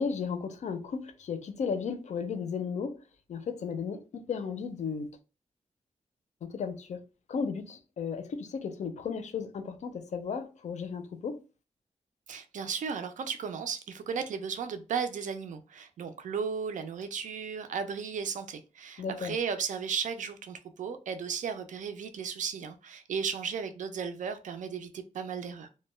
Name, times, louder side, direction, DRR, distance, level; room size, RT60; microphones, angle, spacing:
voice 1, 0.0-3.0 3.3-5.1 6.4-7.0 7.3-11.4 19.0-19.4, left 6 dB, 65° left, 0.4 m, -34 dB
voice 2, 12.3-25.7, right 6 dB, 80° right, 0.4 m, -35 dB
2.2 x 2.1 x 3.1 m
wide cardioid pair, 165°, 13 cm